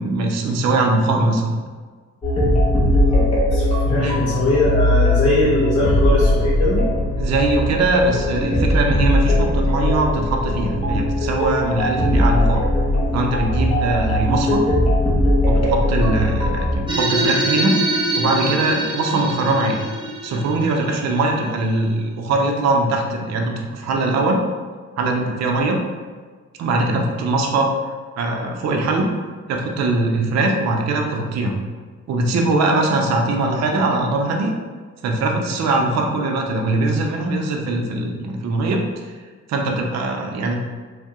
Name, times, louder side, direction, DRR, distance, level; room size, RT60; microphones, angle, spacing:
voice 1, 0.0-1.6 3.9-4.2 7.2-12.6 13.1-14.6 15.5-17.7 18.2-19.8 20.2-24.4 25.0-25.8 26.6-27.7 28.2-29.1 29.5-31.5 32.1-34.5 35.0-38.8 39.5-40.5, right 2 dB, 60° right, 1 dB, 0.5 m, -21 dB
sound 1, 2.2-16.8, left 1 dB, 20° left, 1.1 m, -19 dB
voice 2, 3.1-6.8, left 2 dB, 55° left, -7 dB, 0.8 m, -21 dB
sound 2, 16.9-21.8, right 1 dB, 15° right, 0.6 m, -24 dB
2.6 x 2.1 x 3.5 m, 1.5 s
cardioid pair, 90°, 30 cm